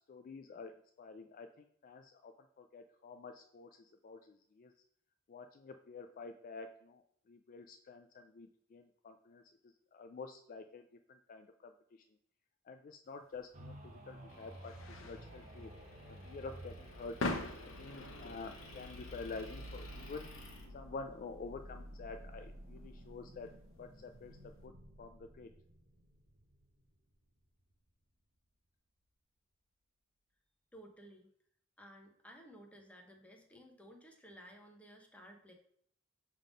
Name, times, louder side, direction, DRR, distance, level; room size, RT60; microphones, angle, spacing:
voice 1, 0.1-0.7 1.0-4.7 5.3-7.0 7.3-9.4 9.9-11.7 12.7-15.7 16.2-17.2 17.8-20.3 20.7-23.5 23.8-24.7 25.0-25.5, left 4 dB, 40° left, 7 dB, 0.3 m, -49 dB
sound 1, 13.3-24.6, left 2 dB, 70° left, 0.7 m, -47 dB
sound 2, 13.5-27.2 27.7-27.8, equal, 40° right, 0.9 m, -52 dB
Motor vehicle (road) / Engine, 14.3-20.7, left 1 dB, 90° left, 1.3 m, -56 dB
voice 2, 30.7-31.3 31.8-35.5, equal, 5° left, 2 dB, 0.9 m, -56 dB
5.7 x 3.6 x 5.1 m, 0.67 s
head